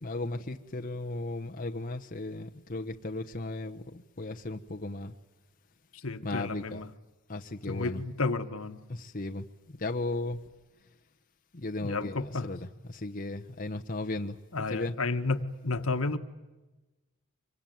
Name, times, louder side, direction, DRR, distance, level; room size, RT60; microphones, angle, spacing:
voice 1, 0.0-5.1 6.2-6.9 7.3-8.0 8.9-9.4 9.8-10.4 11.5-12.6 12.9-14.4 14.7-14.9, left 2 dB, 40° left, 1.0 m, -35 dB
voice 2, 5.9-6.9 7.7-8.8 11.8-12.5 14.5-16.2, left 3 dB, 75° left, 1.5 m, -32 dB
25.5 x 23.5 x 9.3 m
head